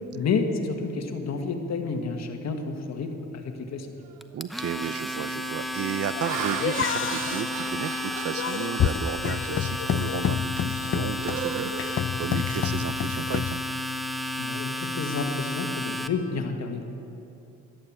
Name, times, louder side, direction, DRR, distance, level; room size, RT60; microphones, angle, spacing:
voice 1, 0.1-3.9 14.4-16.8, left 4 dB, 60° left, 4 dB, 1.7 m, -30 dB
Laughter, 4.1-4.4 5.0-5.3 5.9-9.7 10.1-10.4 10.8-12.7, right 10 dB, 85° right, 0.8 m, -37 dB
Domestic sounds home sounds, 4.2-16.1, left 1 dB, ahead, 0.8 m, -32 dB
voice 2, 4.3-13.6, right 10 dB, 50° right, 16 dB, 0.5 m, -34 dB
sound 1, 6.1-13.6, left 9 dB, 45° left, 0.5 m, -29 dB
13.5 x 11.5 x 7.5 m, 2.8 s
cardioid pair, 75°, 30 cm